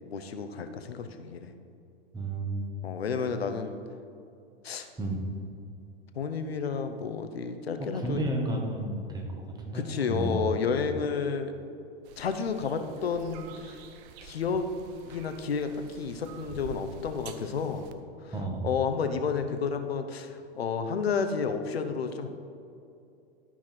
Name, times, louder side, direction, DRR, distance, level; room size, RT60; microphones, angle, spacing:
voice 1, 0.1-1.5 2.8-3.8 4.6-4.9 6.1-8.2 9.7-11.5 12.2-13.8 14.2-14.7 15.0-17.9 18.2-18.3 18.6-22.3, left 5 dB, 85° left, 8 dB, 0.9 m, -31 dB
voice 2, 2.1-2.7 5.0-5.2 7.9-10.4 18.3-18.7, right 1 dB, 15° right, 1 dB, 1.7 m, -32 dB
sound 1, 12.0-17.9, right 7 dB, 45° right, 0.8 m, -48 dB
12.5 x 5.8 x 4.6 m, 2.6 s
hypercardioid pair, 105°, 30 cm